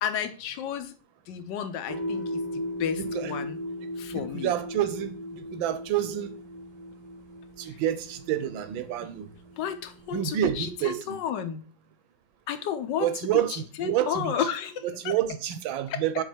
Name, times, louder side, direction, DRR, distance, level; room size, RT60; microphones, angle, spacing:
voice 1, 0.0-0.9 1.3-3.6 4.0-4.5 9.0-9.1 9.6-11.6 12.5-15.1 15.9-16.0, left 8 dB, 70° left, 1.2 m, -32 dB
sound 1, 1.9-10.4, left 1 dB, 25° right, 0.5 m, -37 dB
voice 2, 3.0-3.3 4.1-6.3 7.6-9.3 10.1-11.2 13.0-14.3 15.0-16.2, right 11 dB, 85° right, 1.5 m, -28 dB
6.7 x 4.1 x 4.4 m
omnidirectional pair, 2.1 m